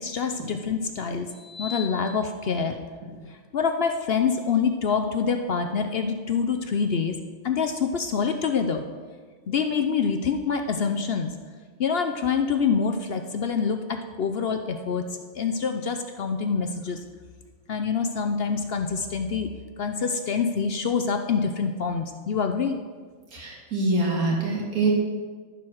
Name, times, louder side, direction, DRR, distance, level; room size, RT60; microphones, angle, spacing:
voice 1, 0.0-1.3 1.6-2.8 3.5-7.2 7.4-8.8 9.5-11.3 11.8-15.0 15.3-17.0 17.7-19.5 19.8-22.8, left 6 dB, 55° left, 6 dB, 0.7 m, -26 dB
voice 2, 1.5-1.8 23.3-24.9, right 2 dB, 80° right, -2 dB, 2.4 m, -25 dB
13.5 x 4.6 x 6.3 m, 1.5 s
omnidirectional pair, 1.5 m